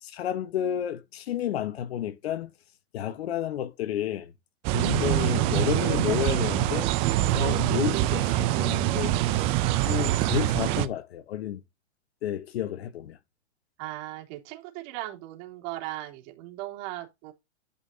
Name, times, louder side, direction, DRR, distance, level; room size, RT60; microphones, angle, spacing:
voice 1, 0.0-2.5 2.9-4.3 4.7-6.9 7.3-9.5 9.8-11.6 12.2-13.2, left 10 dB, 60° left, 1.2 m, -31 dB
sound 1, 4.6-10.9, right 14 dB, 15° right, 0.4 m, -25 dB
voice 2, 13.8-17.3, right 16 dB, 40° right, 3.2 m, -38 dB
12.0 x 5.6 x 2.8 m
hypercardioid pair, 135°, 35 cm